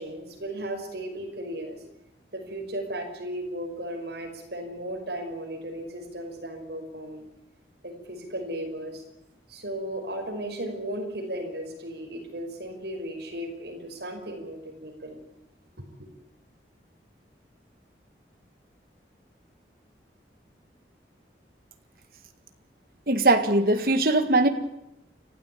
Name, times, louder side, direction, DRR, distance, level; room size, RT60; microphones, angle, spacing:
voice 1, 0.0-1.8 2.3-7.3 7.8-9.0 9.5-15.2, right 1 dB, 70° right, 3 dB, 5.5 m, -35 dB
voice 2, 23.1-24.5, right 2 dB, 55° right, 8 dB, 1.9 m, -21 dB
30.0 x 13.0 x 8.6 m, 0.85 s
head